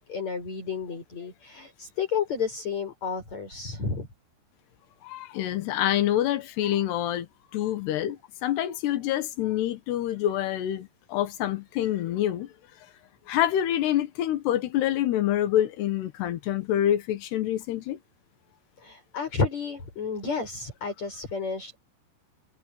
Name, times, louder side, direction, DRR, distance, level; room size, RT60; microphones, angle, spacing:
voice 1, 0.0-4.1 18.8-21.8, left 5 dB, 40° left, 7.8 m, -31 dB
voice 2, 5.1-7.3 7.5-8.2 8.4-12.5 13.3-18.0, left 12 dB, 80° left, 3.5 m, -26 dB
omnidirectional pair, 4.8 m